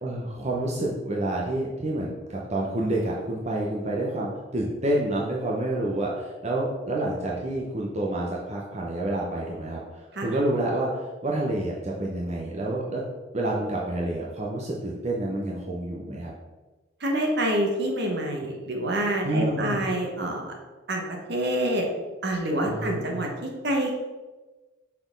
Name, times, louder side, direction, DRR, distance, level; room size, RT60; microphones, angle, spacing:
voice 1, 0.0-9.8 10.2-10.9 11.2-13.0 13.3-16.3 19.2-19.8 22.7-23.3, right 1 dB, 35° right, -3 dB, 0.8 m, -28 dB
voice 2, 17.0-20.5 20.9-21.8 22.2-24.0, right 1 dB, 60° right, 1 dB, 1.3 m, -27 dB
6.0 x 4.3 x 5.2 m, 1.2 s
head